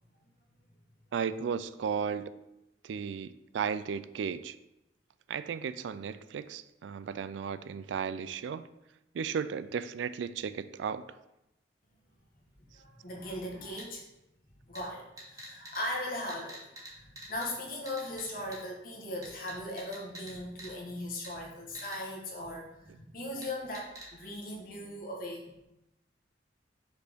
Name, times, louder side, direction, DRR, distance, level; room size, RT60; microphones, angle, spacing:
voice 1, 1.1-2.3 2.8-4.6 5.3-8.7 9.1-11.1, right 7 dB, 80° right, 14 dB, 0.3 m, -35 dB
voice 2, 12.7-14.0 14.7-25.5, left 1 dB, 50° left, -1 dB, 1.4 m, -39 dB
sound 1, 13.8-13.9 14.7-14.8 15.2-15.8 16.3-16.9 17.2-17.5 17.9-18.2 18.5-18.6 19.2-20.3 20.6-20.7 21.2-21.3 21.7-22.0 23.4-23.5 23.7-24.1, right 1 dB, 20° right, 1.8 m, -45 dB
5.3 x 4.3 x 5.1 m, 0.92 s
head